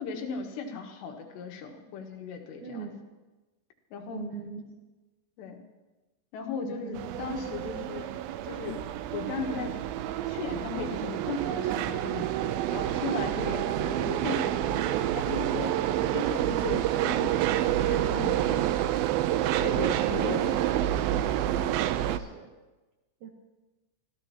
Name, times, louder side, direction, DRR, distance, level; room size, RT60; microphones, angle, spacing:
voice 1, 0.0-2.9 3.9-4.3 5.4-5.6 6.3-8.1 8.4-9.8 10.3-15.8 16.1-17.4 17.9-19.0 19.5-20.7, left 5 dB, 80° left, 2 dB, 3.6 m, -37 dB
voice 2, 2.6-3.0 4.1-4.8 6.6-7.4 18.3-18.7 22.0-22.5 23.2-23.3, right 6 dB, 70° right, 1 dB, 1.9 m, -41 dB
sound 1, 6.9-22.2, right 12 dB, 85° right, 2.1 m, -28 dB
26.0 x 15.0 x 2.9 m, 1.1 s
omnidirectional pair, 4.9 m